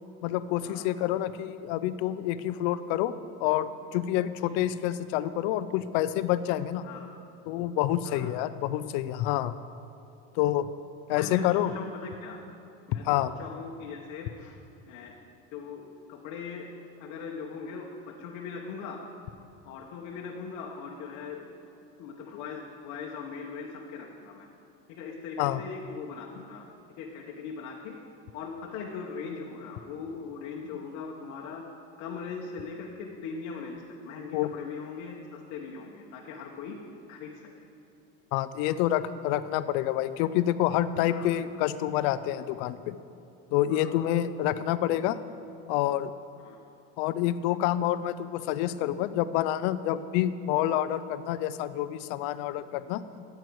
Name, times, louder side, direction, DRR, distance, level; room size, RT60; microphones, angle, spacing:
voice 1, 0.2-3.1 3.4-6.8 7.5-9.5 10.4-10.7 11.1-11.7 13.0-13.3 25.4-25.6 34.3-34.5 38.3-43.0 43.5-45.2 45.7-46.1 47.0-53.1, left 13 dB, 70° left, 14 dB, 0.6 m, -28 dB
voice 2, 11.1-12.4 12.9-14.6 14.9-15.1 15.5-19.0 19.6-21.5 22.0-24.5 24.9-26.7 27.0-28.0 28.3-31.6 32.0-36.8 37.1-37.7 41.1-41.3 43.7-44.1 46.4-46.6, left 5 dB, 55° left, -1 dB, 1.1 m, -40 dB
15.5 x 7.9 x 4.6 m, 2.8 s
cardioid pair, 150°, 33 cm